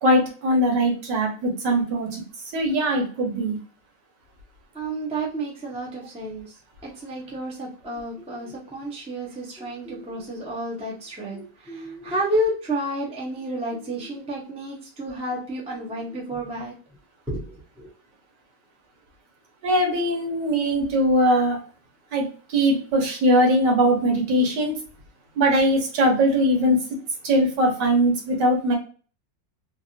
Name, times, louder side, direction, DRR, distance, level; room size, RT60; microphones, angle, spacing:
voice 1, 0.0-2.2 2.5-3.6 19.6-21.6 22.1-22.3 22.5-24.8 25.4-26.8 27.2-28.7, equal, 80° right, 1 dB, 1.6 m, -21 dB
voice 2, 4.7-6.5 6.9-16.7 17.3-17.9, right 1 dB, 10° right, -3 dB, 0.4 m, -30 dB
3.3 x 2.4 x 2.6 m, 0.40 s
omnidirectional pair, 1.9 m